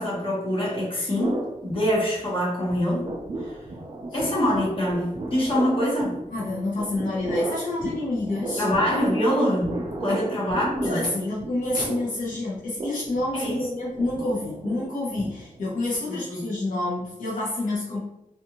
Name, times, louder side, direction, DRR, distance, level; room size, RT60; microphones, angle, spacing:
voice 1, 0.0-3.1 4.1-6.2 8.6-9.7 10.0-11.0 13.3-13.6 16.3-16.4, equal, 40° left, -6 dB, 1.1 m, -24 dB
sound 1, 1.2-2.4 2.7-15.8, right 2 dB, 30° right, 0.4 m, -35 dB
voice 2, 6.3-8.6 10.1-10.2 10.8-18.0, left 2 dB, 70° left, -7 dB, 0.8 m, -28 dB
2.5 x 2.5 x 2.8 m, 0.86 s
wide cardioid pair, 140°, 14 cm